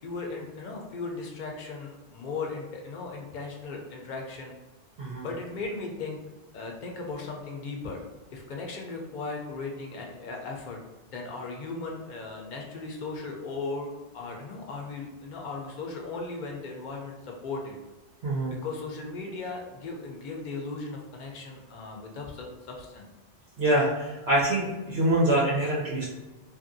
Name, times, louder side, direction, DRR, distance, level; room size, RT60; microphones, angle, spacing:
voice 1, 0.0-4.5 5.2-6.2 6.5-8.0 8.3-10.8 11.1-17.8 18.5-23.1, left 3 dB, 55° left, 0 dB, 0.5 m, -37 dB
voice 2, 23.6-26.0, right 1 dB, 65° right, -7 dB, 0.9 m, -25 dB
2.9 x 2.5 x 2.5 m, 1.1 s
omnidirectional pair, 1.2 m